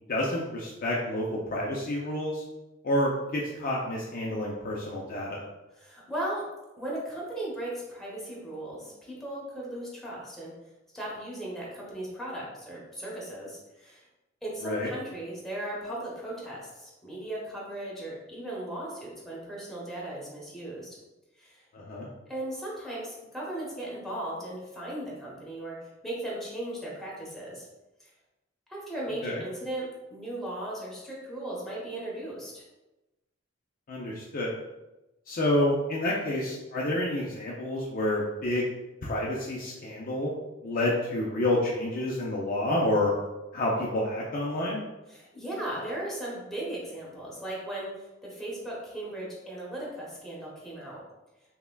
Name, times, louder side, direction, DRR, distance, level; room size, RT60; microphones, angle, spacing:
voice 1, 0.1-2.4 2.8-5.4 14.6-14.9 21.7-22.1 29.2-29.4 33.9-34.5 35.3-38.7 39.0-40.3 40.6-43.1 43.5-44.8, left 1 dB, 45° left, -3 dB, 0.5 m, -29 dB
voice 2, 5.7-6.4 6.8-10.5 10.9-14.0 14.4-21.0 21.4-21.6 22.3-25.8 26.0-27.7 28.0-28.1 28.7-32.6 45.1-51.0, right 1 dB, ahead, -6 dB, 1.0 m, -37 dB
5.7 x 2.1 x 2.2 m, 1.0 s
head